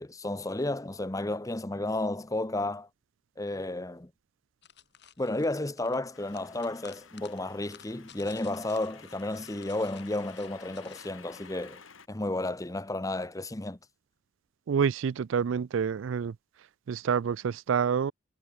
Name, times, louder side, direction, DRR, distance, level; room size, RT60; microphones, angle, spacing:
voice 1, 0.0-2.9 3.4-4.1 5.2-11.8 12.1-13.8, left 2 dB, 15° left, 0.8 m, -32 dB
sound 1, 4.6-11.1, left 8 dB, 55° left, 4.1 m, -55 dB
sound 2, 6.1-12.1, left 5 dB, 80° left, 5.1 m, -52 dB
voice 2, 14.7-16.4 16.9-18.1, right 7 dB, 70° right, 0.4 m, -27 dB
head